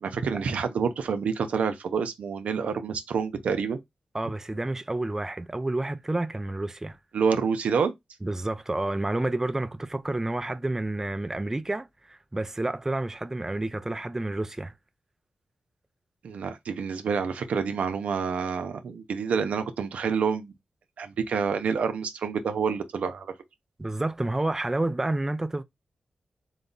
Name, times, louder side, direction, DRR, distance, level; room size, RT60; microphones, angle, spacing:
voice 1, 0.0-3.8 7.1-7.9 16.2-20.5 21.0-23.3, right 6 dB, 90° right, 0.6 m, -28 dB
voice 2, 4.1-7.0 8.2-14.7 23.8-25.6, right 2 dB, 20° right, 0.4 m, -29 dB
4.0 x 2.2 x 3.9 m
cardioid pair, 65°, 2 cm